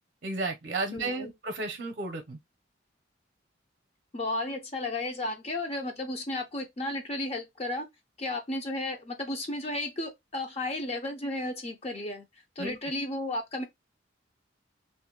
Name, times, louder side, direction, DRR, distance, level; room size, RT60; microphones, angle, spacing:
voice 1, 0.2-2.4 12.6-12.8, right 2 dB, 50° right, 0.6 m, -33 dB
voice 2, 0.9-1.3 4.1-7.9 8.2-12.3 12.6-13.6, left 2 dB, 35° left, 0.5 m, -33 dB
2.6 x 2.1 x 3.6 m
head